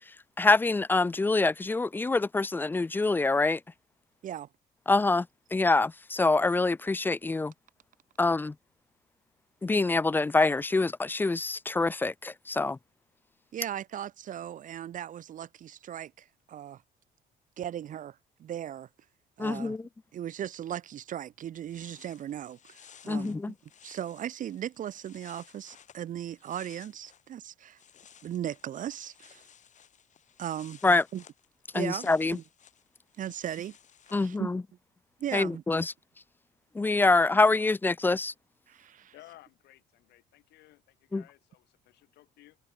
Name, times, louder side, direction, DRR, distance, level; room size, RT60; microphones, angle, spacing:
voice 1, 0.4-3.6 4.9-5.3 5.5-7.5 8.2-8.5 9.6-12.8 19.4-19.9 23.1-23.5 30.8-31.0 31.7-32.4 34.1-34.6 35.3-35.9 36.7-38.3 41.1-41.2, left 3 dB, 10° left, 0.3 m, -25 dB
voice 2, 13.5-16.8 17.6-18.9 19.4-19.8 20.1-23.3 23.8-27.8 28.2-29.5 30.4-30.8 31.1-31.2 31.7-32.4 33.2-33.7 34.1-34.5 35.2-35.6 38.7-39.1, right 10 dB, 50° right, 0.9 m, -37 dB
sound 1, 21.5-27.3 27.6-34.3, left 8 dB, 45° left, 2.9 m, -57 dB
voice 3, 39.1-42.6, left 16 dB, 80° left, 5.8 m, -56 dB
cardioid pair, 110°, 17 cm